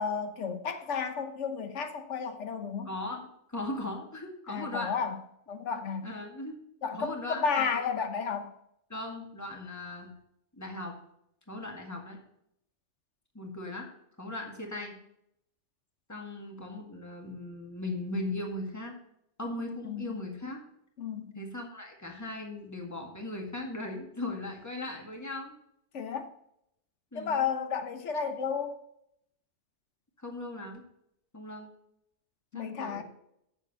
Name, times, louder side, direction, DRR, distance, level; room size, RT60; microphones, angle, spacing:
voice 1, 0.0-2.9 4.5-5.2 5.5-6.1 6.8-8.5 19.8-20.1 21.0-21.4 25.9-26.3 27.1-28.8 32.5-33.0, left 6 dB, 85° left, 1.2 m, -32 dB
voice 2, 2.8-5.0 6.0-6.6 6.9-7.8 8.9-10.1 10.5-11.0 11.5-12.2 13.3-13.9 14.2-15.0 16.1-19.0 19.4-20.6 21.4-25.5 27.1-27.5 30.2-30.8 31.3-31.7 32.5-33.0, left 2 dB, 15° left, 1.8 m, -38 dB
8.3 x 6.9 x 5.3 m
omnidirectional pair, 1.2 m